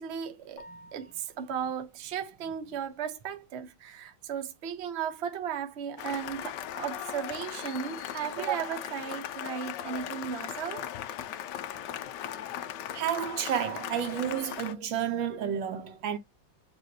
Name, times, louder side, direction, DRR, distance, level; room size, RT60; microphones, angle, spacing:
voice 1, 0.0-0.7 0.9-10.9, right 8 dB, 50° right, 0.8 m, -35 dB
sound 1, 0.6-1.6, left 1 dB, 45° left, 1.2 m, -52 dB
Cheering / Applause, 6.0-14.7, left 11 dB, 70° left, 1.1 m, -38 dB
voice 2, 12.9-16.2, right 9 dB, 75° right, 1.3 m, -31 dB
7.4 x 2.6 x 2.7 m
omnidirectional pair, 2.2 m